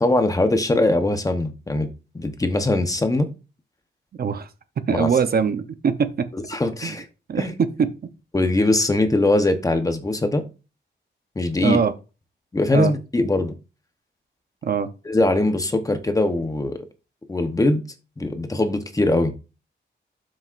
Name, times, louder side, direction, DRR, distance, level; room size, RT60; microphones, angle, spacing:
voice 1, 0.0-1.9 2.1-3.3 4.9-5.1 6.3-7.1 7.4-7.5 8.3-10.4 11.4-11.8 12.5-13.5 15.0-16.8 17.3-17.8 18.2-19.3, left 2 dB, 15° left, 0.9 m, -21 dB
voice 2, 4.9-6.3 6.8-6.9 7.3-7.9 11.6-11.9 12.7-12.9 14.6-14.9, right 6 dB, 50° right, 0.8 m, -22 dB
12.0 x 6.3 x 2.5 m
wide cardioid pair, 150°, 20 cm